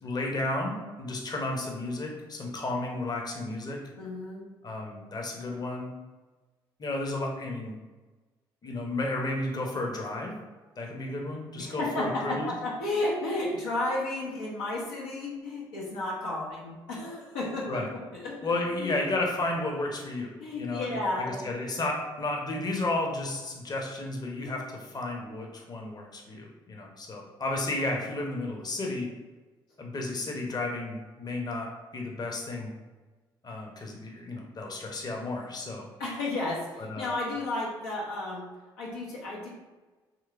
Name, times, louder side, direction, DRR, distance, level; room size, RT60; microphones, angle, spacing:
voice 1, 0.0-3.8 4.6-5.9 6.8-7.7 8.6-10.3 10.8-12.5 17.6-17.9 18.4-20.3 20.6-29.1 29.8-32.7 33.4-35.9 36.9-37.2, left 2 dB, 35° left, 1 dB, 0.7 m, -32 dB
voice 2, 4.0-4.4 11.6-19.0 20.4-21.5 36.0-38.5 38.8-39.5, left 2 dB, 85° left, -4 dB, 0.5 m, -33 dB
3.0 x 3.0 x 2.4 m, 1.3 s
hypercardioid pair, 45°, 11 cm